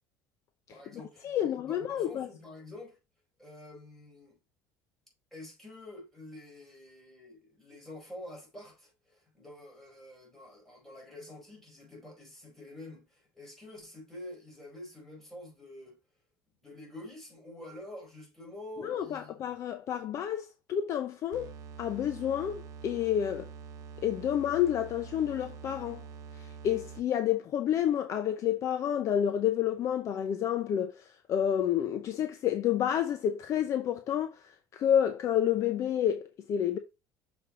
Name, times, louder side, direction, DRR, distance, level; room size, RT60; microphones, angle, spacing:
voice 1, 0.7-3.0 3.4-4.4 5.3-16.0 16.6-19.4, left 1 dB, 5° left, 4.5 m, -48 dB
voice 2, 1.2-2.3 18.8-21.5 21.8-23.5 24.0-26.0 26.4-34.4 34.7-36.8, left 10 dB, 40° left, 0.8 m, -29 dB
sound 1, 21.3-27.2, right 6 dB, 45° right, 1.1 m, -46 dB
6.6 x 5.2 x 3.8 m
cardioid pair, 155°, 8 cm